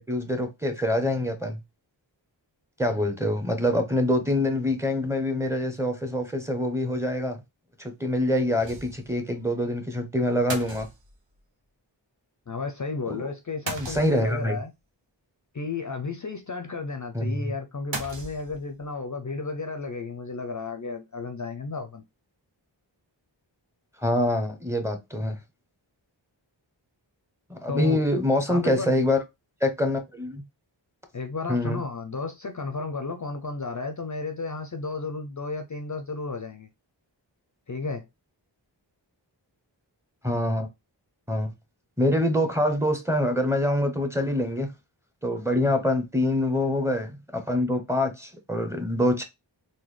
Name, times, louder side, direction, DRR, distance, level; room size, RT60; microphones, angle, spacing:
voice 1, 0.0-1.6 2.8-7.4 7.8-10.9 13.1-13.2 13.8-14.6 17.1-17.5 24.0-25.4 27.5-29.2 29.6-30.4 31.5-31.8 40.2-40.7 41.3-41.5 42.0-44.7 45.2-49.2, left 1 dB, 5° right, 0.8 m, -25 dB
sound 1, 8.6-9.2 9.4-9.5 10.5-11.4 13.7-14.5 17.9-18.8, right 3 dB, 70° right, 0.8 m, -37 dB
voice 2, 12.5-14.7 15.5-22.0 27.7-28.0 28.5-29.0 31.1-36.7 37.7-38.0 45.7-45.8, left 4 dB, 40° left, 0.5 m, -33 dB
3.8 x 2.1 x 3.2 m
wide cardioid pair, 50°, 46 cm